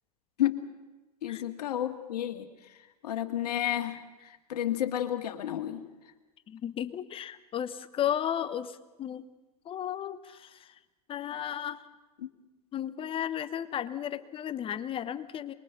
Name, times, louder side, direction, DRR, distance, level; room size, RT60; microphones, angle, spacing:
voice 1, 1.2-2.5 3.0-5.8 12.2-12.3, left 12 dB, 70° left, 6 dB, 1.9 m, -31 dB
voice 2, 6.5-9.2 9.7-10.5 11.1-11.8 12.7-15.5, left 10 dB, 25° left, 14 dB, 0.9 m, -34 dB
24.5 x 22.0 x 5.8 m, 1.1 s
hypercardioid pair, 105°, 21 cm